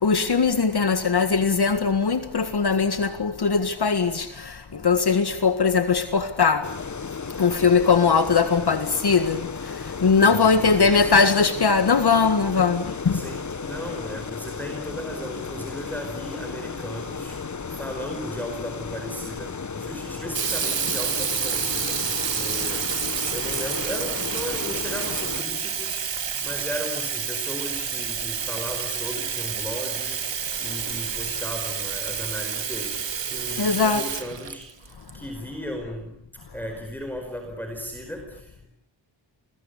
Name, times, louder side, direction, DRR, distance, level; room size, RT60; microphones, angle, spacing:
voice 1, 0.0-6.7 7.4-13.2 33.6-34.0, left 5 dB, 55° left, 1.8 m, -20 dB
sound 1, 6.6-25.4, left 5 dB, 40° left, 1.3 m, -34 dB
voice 2, 10.3-11.1 13.1-17.4 17.7-22.8 23.3-26.1 26.4-30.2 30.6-34.7 35.1-36.2 36.5-38.7, equal, 5° left, 5.1 m, -36 dB
Sink (filling or washing), 20.3-35.1, right 7 dB, 70° right, 1.8 m, -29 dB
29.5 x 22.5 x 8.4 m
wide cardioid pair, 130°, 46 cm